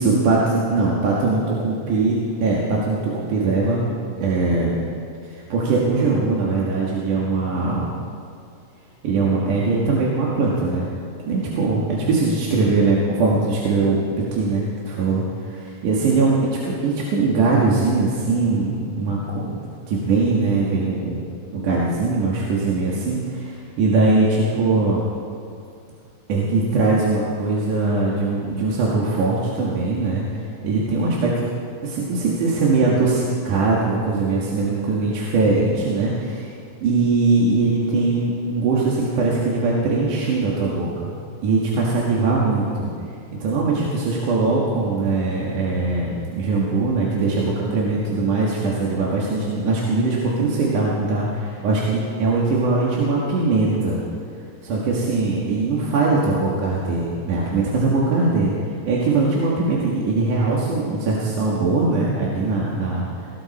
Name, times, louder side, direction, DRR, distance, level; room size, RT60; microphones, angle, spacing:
voice 1, 0.0-3.8 4.2-4.8 5.3-7.9 9.0-10.9 11.3-15.2 15.5-19.6 19.9-21.2 21.5-25.0 26.3-30.3 30.6-31.4 31.8-36.5 36.8-41.1 41.4-42.9 43.4-54.0 54.6-58.5 58.9-63.1, right 3 dB, 60° right, -5 dB, 2.9 m, -21 dB
18.5 x 16.5 x 4.2 m, 2.3 s
omnidirectional pair, 4.7 m